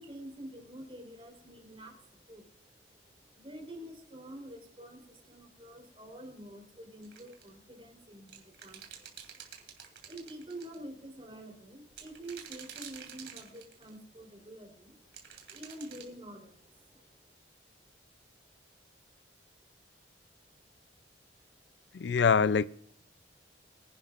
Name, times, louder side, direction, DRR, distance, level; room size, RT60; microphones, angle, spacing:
voice 1, 0.0-17.3, right 1 dB, 30° right, 3.5 m, -48 dB
sound 1, 7.0-7.5 8.3-10.8 11.9-13.9 15.1-16.1, right 8 dB, 75° right, 2.7 m, -48 dB
voice 2, 21.9-22.7, left 6 dB, 70° left, 0.4 m, -24 dB
23.5 x 11.0 x 2.4 m
head